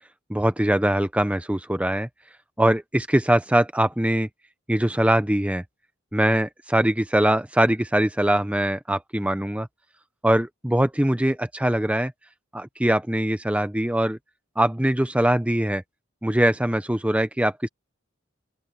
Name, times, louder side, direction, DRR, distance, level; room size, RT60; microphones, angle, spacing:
voice 1, 0.3-2.1 2.6-4.3 4.7-5.6 6.1-9.7 10.2-12.1 12.5-14.2 14.6-15.8 16.2-17.7, right 1 dB, 5° right, 0.7 m, -22 dB
open air
head